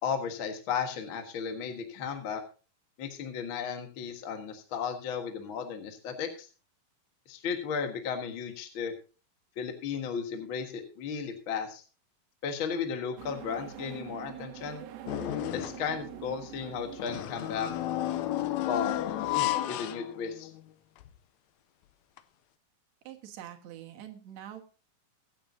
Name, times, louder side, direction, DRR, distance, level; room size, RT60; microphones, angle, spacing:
voice 1, 0.0-2.4 3.0-6.5 7.3-8.9 9.6-11.8 12.4-14.8 15.5-17.7 18.7-19.0 19.3-20.5, left 6 dB, 45° left, 5 dB, 1.8 m, -34 dB
sound 1, 13.2-19.5, right 10 dB, 85° right, 3.0 m, -46 dB
sound 2, 15.1-15.9 17.0-20.6 21.0-21.1 22.2-22.3, left 13 dB, 85° left, 1.6 m, -32 dB
voice 2, 23.0-24.6, right 11 dB, 60° right, 3 dB, 2.5 m, -45 dB
23.0 x 8.7 x 2.7 m, 0.33 s
omnidirectional pair, 4.1 m